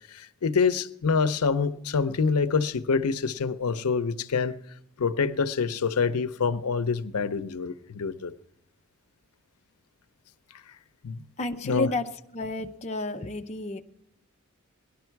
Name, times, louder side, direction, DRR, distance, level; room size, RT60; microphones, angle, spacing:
voice 1, 0.1-4.5 5.0-8.3 11.0-11.2 11.6-11.9, left 5 dB, 90° left, 0.6 m, -26 dB
voice 2, 11.4-13.8, left 2 dB, 30° left, 0.6 m, -31 dB
18.5 x 11.5 x 4.6 m
head